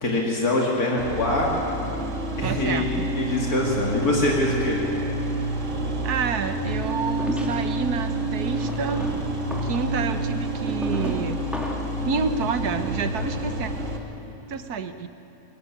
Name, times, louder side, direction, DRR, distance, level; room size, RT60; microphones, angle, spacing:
voice 1, 0.0-1.6 2.3-2.8 3.1-4.8, left 2 dB, 75° left, -2 dB, 2.9 m, -24 dB
sound 1, 1.0-14.0, right 1 dB, 50° right, 2.5 m, -28 dB
voice 2, 2.4-3.1 6.0-9.1 9.6-11.4 12.0-13.7 14.5-15.1, right 5 dB, 85° right, 9 dB, 1.6 m, -29 dB
sound 2, 6.9-7.9 8.5-12.0, equal, ahead, 2.4 m, -34 dB
21.5 x 20.5 x 9.9 m, 2.9 s
omnidirectional pair, 1.6 m